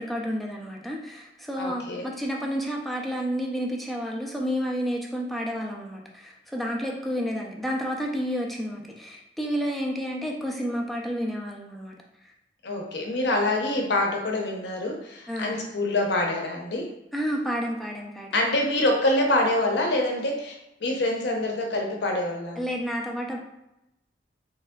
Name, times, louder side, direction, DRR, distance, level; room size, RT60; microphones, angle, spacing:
voice 1, 0.0-11.9 15.3-15.5 17.1-18.5 22.6-23.4, equal, ahead, -1 dB, 0.3 m, -30 dB
voice 2, 1.6-2.1 12.6-16.9 18.3-20.5 20.8-22.6, left 1 dB, 70° left, 1 dB, 0.7 m, -25 dB
3.5 x 3.2 x 2.2 m, 0.89 s
head